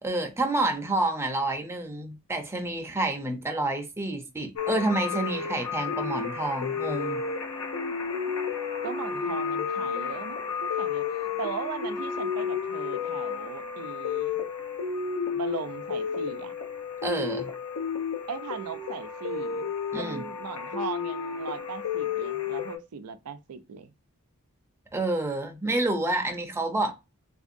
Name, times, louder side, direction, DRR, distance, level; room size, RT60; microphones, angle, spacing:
voice 1, 0.0-7.2 17.0-17.5 19.9-20.2 24.9-26.9, right 2 dB, 10° right, 0.6 m, -29 dB
sound 1, 4.6-22.8, left 6 dB, 80° left, 0.8 m, -32 dB
voice 2, 8.8-14.4 15.3-16.5 18.3-23.9, right 6 dB, 90° right, 0.5 m, -38 dB
3.5 x 2.7 x 2.5 m
head